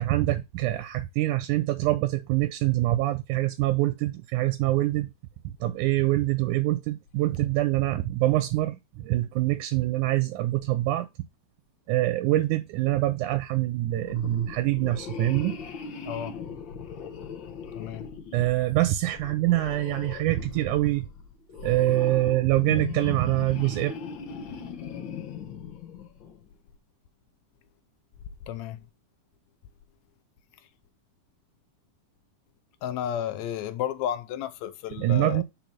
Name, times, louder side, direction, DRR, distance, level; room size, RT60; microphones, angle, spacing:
voice 1, 0.0-5.1 5.6-11.1 11.9-15.6 18.3-21.1 21.6-24.0 35.0-35.4, right 16 dB, 85° right, 2.0 m, -25 dB
sound 1, 14.0-26.5, left 6 dB, 65° left, 1.2 m, -39 dB
voice 2, 16.0-16.4 17.7-18.1 28.5-28.8 32.8-35.4, left 10 dB, 80° left, 1.7 m, -32 dB
5.4 x 4.5 x 5.8 m
omnidirectional pair, 3.6 m